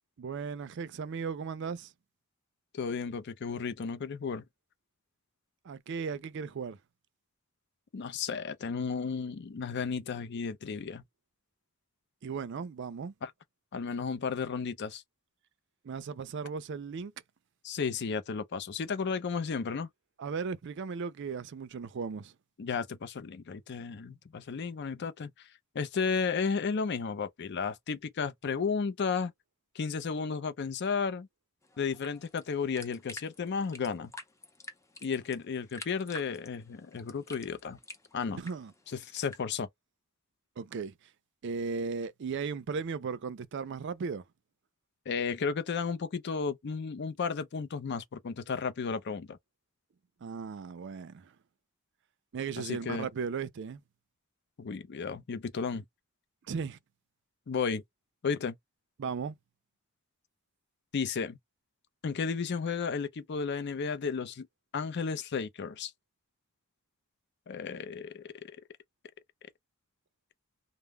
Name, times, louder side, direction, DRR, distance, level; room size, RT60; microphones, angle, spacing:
voice 1, 0.2-1.9 5.6-6.8 12.2-13.1 15.8-17.1 20.2-22.3 38.4-38.7 40.6-40.9 41.4-44.2 50.2-51.3 52.3-53.8 56.5-56.8 59.0-59.4, right 5 dB, 55° right, 0.4 m, -36 dB
voice 2, 2.7-4.4 7.9-11.0 13.2-13.3 13.7-15.0 17.6-19.9 22.6-25.3 25.7-29.3 29.7-31.3 31.8-34.1 35.0-37.8 38.1-38.4 38.9-39.7 45.1-49.4 52.6-53.1 54.6-55.8 57.5-57.8 58.2-58.5 60.9-61.4 62.0-64.5 64.7-65.9 67.5-68.2, left 5 dB, 55° left, 0.5 m, -33 dB
sound 1, 31.6-39.4, left 2 dB, 15° left, 0.6 m, -49 dB
2.2 x 2.0 x 3.3 m
head